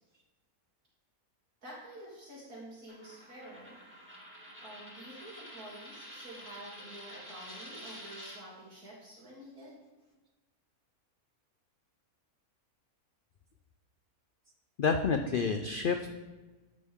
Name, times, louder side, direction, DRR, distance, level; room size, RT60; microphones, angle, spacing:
voice 1, 1.6-3.8 4.6-9.8, right 1 dB, 85° right, -7 dB, 3.3 m, -49 dB
Coin (dropping), 2.9-8.4, equal, 10° right, 1.9 m, -49 dB
voice 2, 14.8-16.1, left 5 dB, 85° left, 5 dB, 0.4 m, -29 dB
11.0 x 5.3 x 3.6 m, 1.2 s
omnidirectional pair, 1.5 m